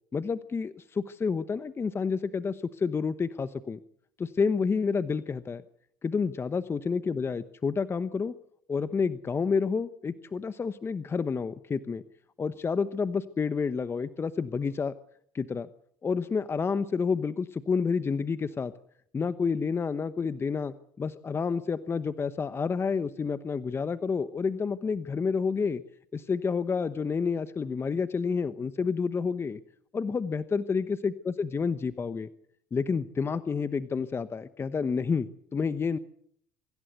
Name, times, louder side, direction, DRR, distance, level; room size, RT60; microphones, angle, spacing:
voice 1, 0.1-3.8 4.2-5.6 6.0-8.3 8.7-12.0 12.4-14.9 15.3-15.7 16.0-18.7 19.1-25.8 26.1-29.6 29.9-32.3 32.7-36.0, left 5 dB, 25° left, 13 dB, 1.0 m, -29 dB
25.0 x 15.5 x 8.2 m, 0.67 s
supercardioid pair, 85°, 9 cm